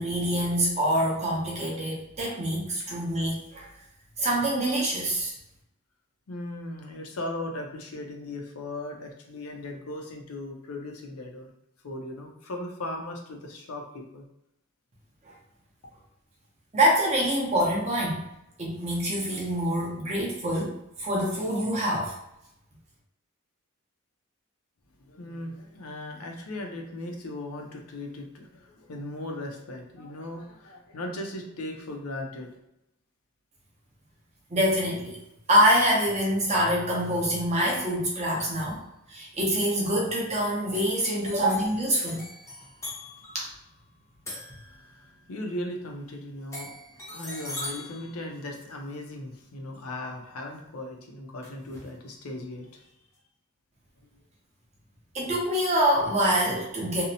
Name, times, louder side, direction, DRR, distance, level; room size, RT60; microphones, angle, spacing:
voice 1, 0.0-3.7 4.2-5.3 16.7-18.2 18.6-22.1 34.5-35.2 35.5-38.8 39.1-42.3 43.3-43.5 55.1-57.0, equal, 30° right, -3 dB, 0.6 m, -25 dB
voice 2, 6.3-11.5 11.8-14.2 25.1-32.6 44.7-46.7 47.1-52.9, left 1 dB, 85° left, 2 dB, 0.5 m, -38 dB
sound 1, 38.4-38.8 40.3-40.4 40.7-45.2 46.5-49.1 51.4-52.0, left 2 dB, 15° left, 0.5 m, -42 dB
2.6 x 2.0 x 2.7 m, 0.83 s
head